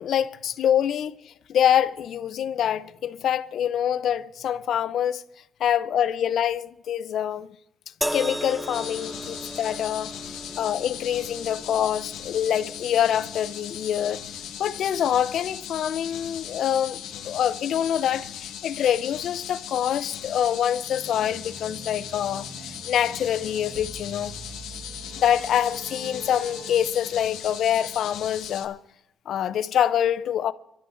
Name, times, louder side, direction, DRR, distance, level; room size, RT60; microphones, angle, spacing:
voice 1, 0.0-5.2 5.6-7.5 8.1-14.2 14.6-24.3 25.2-28.8 29.3-30.5, left 10 dB, 70° left, 0.5 m, -25 dB
sound 1, 8.0-21.3 22.3-22.5, equal, 5° right, 0.5 m, -39 dB
sound 2, 8.7-28.7, left 10 dB, 85° left, 1.0 m, -38 dB
sound 3, 20.9-26.8, right 4 dB, 80° right, 1.6 m, -44 dB
28.5 x 13.0 x 2.6 m
cardioid pair, 90°, 0 cm